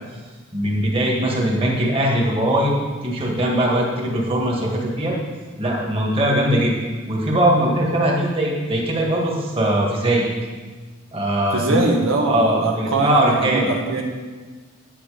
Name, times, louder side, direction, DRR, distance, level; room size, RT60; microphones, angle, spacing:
voice 1, 0.5-2.7 3.0-5.1 5.6-6.8 7.1-10.3 11.1-11.8 12.3-13.7, right 1 dB, 30° right, -2 dB, 1.9 m, -20 dB
voice 2, 11.5-14.0, right 2 dB, 80° right, 0 dB, 1.2 m, -22 dB
10.0 x 7.9 x 5.0 m, 1.4 s
head